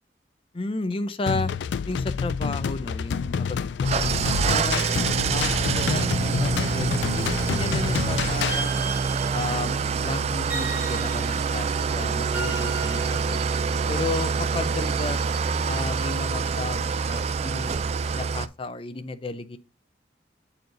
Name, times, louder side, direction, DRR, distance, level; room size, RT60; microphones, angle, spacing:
voice 1, 0.5-1.5 1.9-4.9 5.3-8.9 9.3-13.4 13.9-15.2 15.7-17.7 18.1-19.6, left 2 dB, 30° left, 0.6 m, -33 dB
sound 1, 1.3-8.6, left 6 dB, 80° left, 0.3 m, -28 dB
Engine starting / Idling, 3.8-18.5, right 5 dB, 35° right, 0.3 m, -26 dB
sound 2, 8.5-9.8 10.5-11.6 12.3-13.9, right 3 dB, 10° right, 2.1 m, -36 dB
7.9 x 4.3 x 3.8 m
head